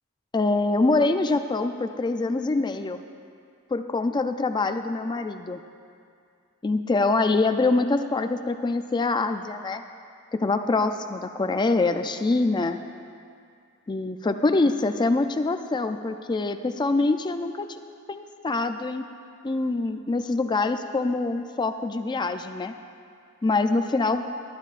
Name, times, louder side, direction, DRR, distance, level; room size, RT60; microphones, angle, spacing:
voice 1, 0.3-3.0 3.7-5.6 6.6-9.8 10.3-12.8 13.9-17.8 18.1-19.1 19.4-22.7 23.4-24.2, left 3 dB, 20° left, 8 dB, 0.3 m, -24 dB
19.5 x 11.0 x 2.5 m, 2.3 s
head